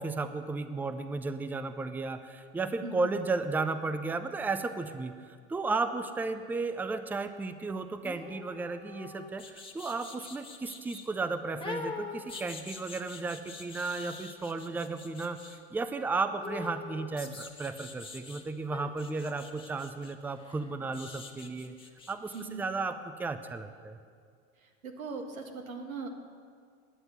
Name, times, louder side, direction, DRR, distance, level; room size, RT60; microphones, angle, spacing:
voice 1, 0.0-21.7 22.1-24.0, right 3 dB, 5° right, 10 dB, 0.4 m, -34 dB
sound 1, 8.0-11.1 11.6-15.6 16.4-18.4 18.7-22.5 22.8-22.9, left 4 dB, 15° left, 1.2 m, -44 dB
voice 2, 22.3-22.7 24.6-26.1, right 4 dB, 90° right, 3 dB, 1.7 m, -40 dB
10.0 x 8.0 x 9.2 m, 2.2 s
hypercardioid pair, 95°, 40 cm